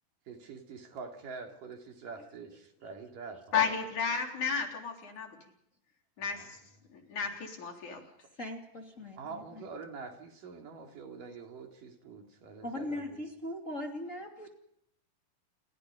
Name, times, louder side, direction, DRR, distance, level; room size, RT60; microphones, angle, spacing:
voice 1, 0.3-3.7 6.2-6.7 9.2-13.2, right 4 dB, 70° right, 4 dB, 4.5 m, -46 dB
voice 2, 3.5-5.3 6.2-6.5 7.1-8.0, left 6 dB, 55° left, 3 dB, 5.0 m, -32 dB
voice 3, 8.3-9.7 12.6-14.5, left 1 dB, 25° left, 2 dB, 2.7 m, -40 dB
29.5 x 22.5 x 5.2 m, 0.75 s
omnidirectional pair, 4.1 m